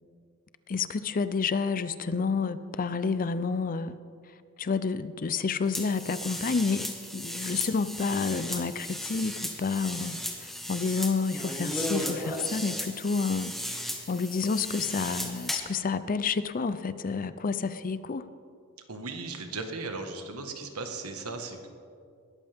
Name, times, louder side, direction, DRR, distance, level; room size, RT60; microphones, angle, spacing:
voice 1, 0.7-4.0 4.6-13.5 14.1-18.3, left 5 dB, 40° left, 13 dB, 0.5 m, -29 dB
sound 1, 5.7-15.8, equal, ahead, 1.5 m, -36 dB
voice 2, 18.9-21.7, right 3 dB, 75° right, 5 dB, 1.6 m, -37 dB
20.0 x 13.5 x 3.6 m, 2.3 s
head